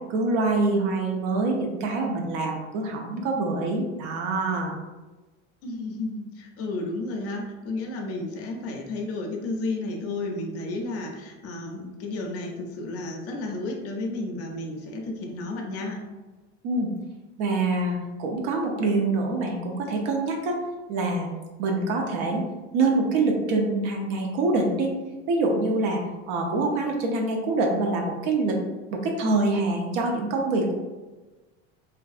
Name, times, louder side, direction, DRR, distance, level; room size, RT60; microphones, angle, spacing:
voice 1, 0.1-4.8 16.6-16.9 17.4-20.6 20.9-21.3 21.6-22.4 22.7-24.9 25.3-26.0 26.3-28.6 28.9-30.7, right 3 dB, 60° right, 1 dB, 0.7 m, -25 dB
voice 2, 5.6-16.0, left 2 dB, 40° left, 1 dB, 0.5 m, -32 dB
2.6 x 2.2 x 2.4 m, 1.2 s
hypercardioid pair, 95°, 36 cm